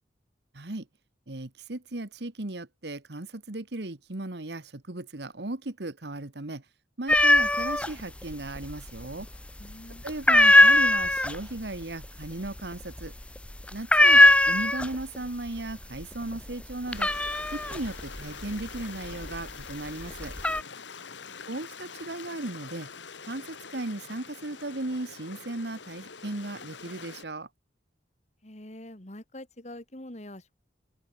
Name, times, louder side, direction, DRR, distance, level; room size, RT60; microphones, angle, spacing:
voice 1, 0.5-0.8 1.3-6.6 7.0-9.3 10.0-13.1 13.7-17.1 17.5-20.3 21.5-22.9 23.3-27.5, right 2 dB, 65° right, 1.5 m, -36 dB
sound 1, 7.1-7.9 8.2-9.0 9.3-9.7 10.1-15.2 15.5-16.0 16.4-19.5 20.0-20.6, left 1 dB, 5° left, 0.6 m, -20 dB
voice 2, 9.6-10.0 20.9-21.4 28.4-30.5, left 1 dB, 40° left, 2.4 m, -45 dB
Stream, 16.9-27.2, left 5 dB, 80° left, 2.0 m, -45 dB
open air
head